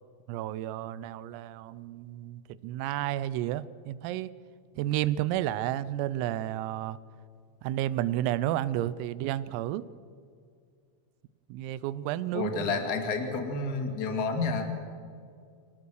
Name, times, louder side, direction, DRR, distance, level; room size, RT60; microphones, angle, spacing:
voice 1, 0.3-4.3 4.8-7.0 7.6-9.8 11.5-12.8, right 13 dB, 90° right, 16 dB, 3.4 m, -31 dB
voice 2, 12.3-14.6, left 4 dB, 50° left, 4 dB, 1.1 m, -30 dB
27.5 x 18.0 x 6.4 m, 2.2 s
omnidirectional pair, 5.9 m